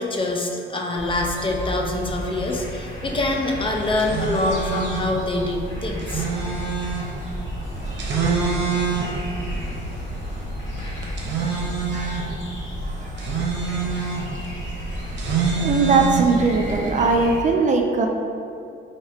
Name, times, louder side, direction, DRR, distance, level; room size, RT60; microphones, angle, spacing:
voice 1, 0.0-6.3, left 2 dB, 25° left, 0 dB, 0.5 m, -25 dB
sound 1, 1.0-17.4, left 1 dB, 70° left, 1.2 m, -34 dB
sound 2, 3.8-16.8, right 4 dB, 60° right, 0.7 m, -27 dB
voice 2, 6.1-6.5 7.3-7.4 7.8-8.0 8.6-9.4 11.2-12.3 12.8-13.2 13.8-14.6 15.4-18.1, right 4 dB, 40° right, 2 dB, 0.4 m, -23 dB
4.3 x 2.8 x 3.3 m, 2.5 s
cardioid pair, 90°, 20 cm